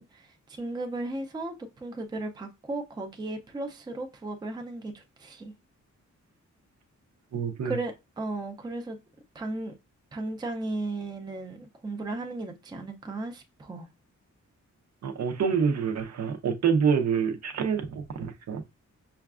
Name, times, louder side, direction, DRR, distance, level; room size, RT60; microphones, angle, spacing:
voice 1, 0.0-5.5 7.6-9.0 9.3-9.7 10.1-13.9, right 2 dB, 15° right, 0.4 m, -35 dB
voice 2, 7.3-7.8 15.0-18.6, right 6 dB, 65° right, 0.6 m, -27 dB
5.6 x 2.3 x 2.3 m
wide cardioid pair, 175°, 30 cm